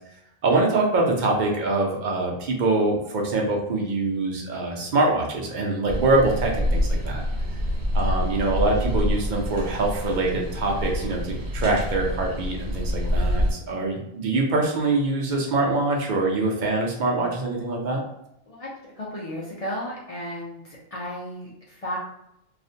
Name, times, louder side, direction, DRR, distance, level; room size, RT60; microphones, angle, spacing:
voice 1, 0.4-7.2 7.9-18.0, right 2 dB, 55° right, 0 dB, 0.6 m, -24 dB
sound 1, 5.9-13.5, left 1 dB, 85° right, 0.9 m, -26 dB
voice 2, 18.5-22.0, equal, 50° left, -5 dB, 0.4 m, -34 dB
2.4 x 2.1 x 2.6 m, 0.79 s
omnidirectional pair, 1.1 m